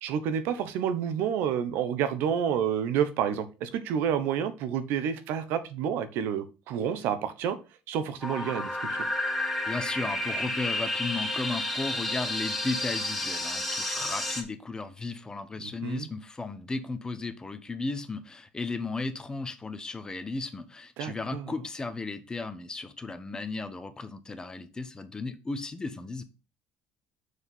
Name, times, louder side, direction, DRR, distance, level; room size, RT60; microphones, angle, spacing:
voice 1, 0.0-7.6 7.9-9.1 15.6-16.1 21.0-21.5, right 8 dB, 75° right, 1.0 m, -29 dB
sound 1, 8.2-14.4, left 1 dB, ahead, 2.2 m, -31 dB
voice 2, 9.6-26.2, left 3 dB, 20° left, 1.1 m, -35 dB
6.4 x 4.8 x 5.5 m
supercardioid pair, 90°, 4 cm